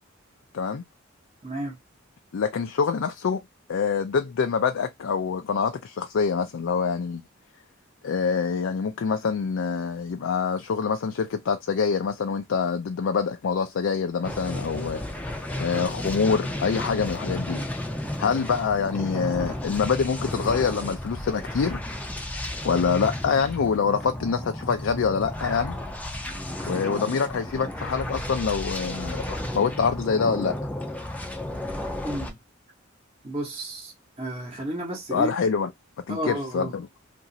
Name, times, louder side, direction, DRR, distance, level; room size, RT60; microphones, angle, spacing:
voice 1, 1.4-1.8 32.0-32.4 33.2-33.9 34.2-35.3 36.1-36.7, right 1 dB, 30° right, 1.0 m, -32 dB
voice 2, 2.3-3.4 3.7-7.2 8.0-15.0 15.6-17.7 18.2-21.8 22.6-25.8 26.6-30.6 35.1-35.7 36.1-36.9, left 5 dB, 70° left, 0.4 m, -25 dB
sound 1, 14.2-32.3, left 1 dB, 5° left, 0.5 m, -33 dB
2.9 x 2.6 x 2.6 m
head